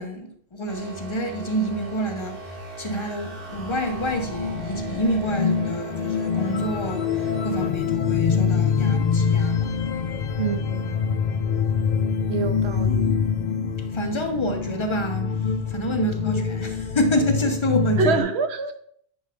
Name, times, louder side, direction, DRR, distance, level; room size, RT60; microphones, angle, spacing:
voice 1, 0.0-9.7 12.9-15.4 15.7-18.3, equal, 30° left, 0.9 m, -28 dB
sound 1, 0.7-7.7, right 1 dB, 60° right, 1.4 m, -37 dB
sound 2, 3.6-18.2, left 6 dB, 55° left, 0.6 m, -25 dB
voice 2, 10.4-11.2 12.3-13.1 18.0-18.7, right 4 dB, 85° right, 1.0 m, -26 dB
10.0 x 5.1 x 3.4 m
omnidirectional pair, 1.1 m